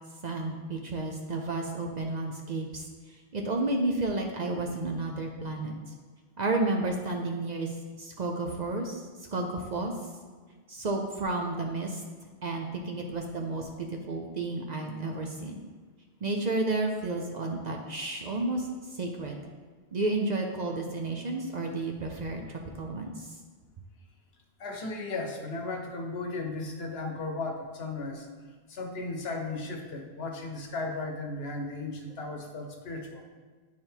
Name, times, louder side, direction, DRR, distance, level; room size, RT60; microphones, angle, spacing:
voice 1, 0.2-5.7 6.4-9.9 10.7-12.0 12.4-15.6 16.2-18.7 18.9-19.4 19.9-23.4, right 2 dB, 50° right, 2 dB, 0.7 m, -32 dB
voice 2, 24.6-28.3 28.7-33.3, left 3 dB, 70° left, 3 dB, 1.0 m, -35 dB
9.4 x 3.6 x 4.5 m, 1.5 s
omnidirectional pair, 1.1 m